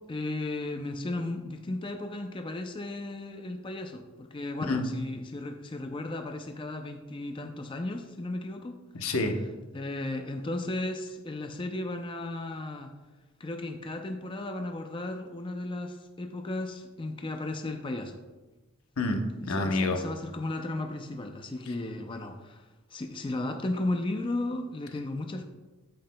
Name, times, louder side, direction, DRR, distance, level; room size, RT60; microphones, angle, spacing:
voice 1, 0.1-8.8 9.7-12.9 13.4-18.2 19.4-25.4, left 2 dB, 25° left, 5 dB, 0.4 m, -35 dB
voice 2, 8.9-9.4 19.0-20.0, left 2 dB, 90° left, 5 dB, 0.9 m, -28 dB
8.7 x 7.5 x 2.2 m, 1.2 s
head